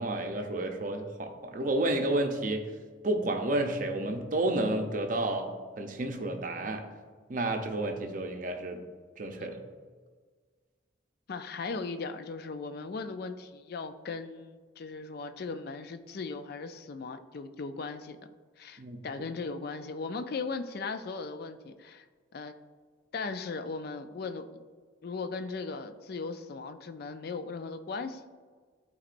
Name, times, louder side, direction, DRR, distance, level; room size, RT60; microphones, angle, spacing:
voice 1, 0.0-2.7 3.0-5.5 5.8-6.9 7.3-8.8 9.2-9.6 18.8-19.0, right 1 dB, 40° right, 4 dB, 0.6 m, -31 dB
voice 2, 11.3-18.2 18.6-22.1 22.3-22.5 23.1-24.6 25.0-28.3, left 4 dB, 50° left, 9 dB, 0.4 m, -38 dB
11.5 x 4.2 x 2.5 m, 1.5 s
head